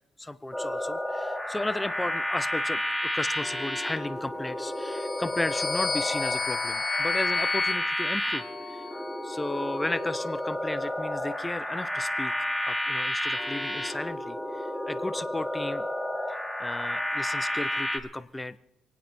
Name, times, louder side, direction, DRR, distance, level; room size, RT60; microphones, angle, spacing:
voice 1, 0.2-8.9 9.2-12.3 12.7-15.9 16.3-18.6, left 2 dB, 15° left, 13 dB, 0.6 m, -34 dB
sound 1, 0.5-18.0, left 1 dB, 5° right, 2.0 m, -31 dB
sound 2, 4.8-9.1, left 4 dB, 35° left, 1.4 m, -32 dB
27.0 x 9.3 x 4.5 m, 0.88 s
cardioid pair, 90°, 0 cm